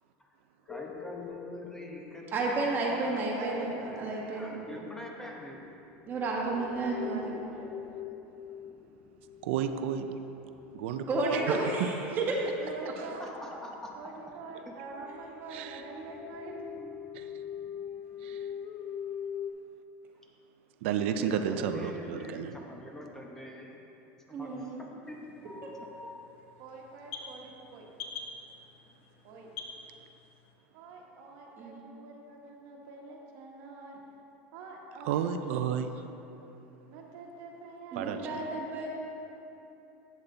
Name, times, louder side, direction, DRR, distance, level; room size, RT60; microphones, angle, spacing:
voice 1, 0.6-3.7 4.3-5.6 8.2-8.6 12.4-12.5 13.0-14.3 14.6-14.8 15.4-16.9 20.9-23.7 24.3-26.3, left 1 dB, 5° left, -1 dB, 0.9 m, -45 dB
sound 1, 0.7-3.1 5.9-11.5 12.4-12.5 12.8-13.0 13.6-13.7 13.8-14.1 14.3-19.5, left 8 dB, 40° left, 0.4 m, -43 dB
voice 2, 2.3-3.7 4.0-4.5 6.1-7.3 11.1-12.2 24.3-24.8 31.6-31.8 37.9-38.9, right 3 dB, 30° right, -3 dB, 1.6 m, -31 dB
voice 3, 3.4-4.4 6.6-7.8 11.2-11.3 12.1-12.3 12.6-13.3 13.9-16.5 26.6-27.9 29.2-29.5 30.7-34.0 34.5-35.2 36.9-38.9, right 4 dB, 60° right, 0 dB, 1.3 m, -45 dB
voice 4, 9.4-10.2 10.7-11.1 11.5-11.9 15.5-15.8 17.2-17.3 18.2-18.4 20.8-22.5 35.1-35.9 38.0-38.2, right 8 dB, 80° right, 8 dB, 0.4 m, -31 dB
sound 2, 25.0-30.6, left 5 dB, 80° left, 0.9 m, -47 dB
8.3 x 7.2 x 3.9 m, 3.0 s
supercardioid pair, 130°, 6 cm